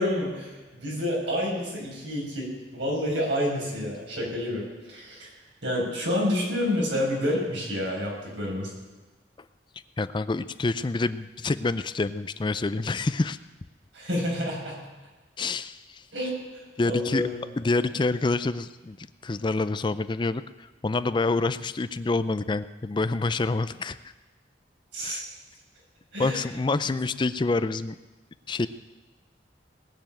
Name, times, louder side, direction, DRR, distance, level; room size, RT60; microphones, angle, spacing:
voice 1, 0.0-5.3 5.6-8.7 13.9-14.8 16.1-16.4 16.8-17.4 24.9-25.2 26.1-26.4 26.8-26.9, left 1 dB, 85° right, -3 dB, 6.6 m, -29 dB
voice 2, 10.0-13.4 15.4-16.1 16.8-17.2 17.6-24.1 25.0-25.2 26.2-28.0 28.5-28.7, left 3 dB, 25° left, 13 dB, 0.4 m, -27 dB
19.5 x 7.0 x 8.9 m, 1.2 s
head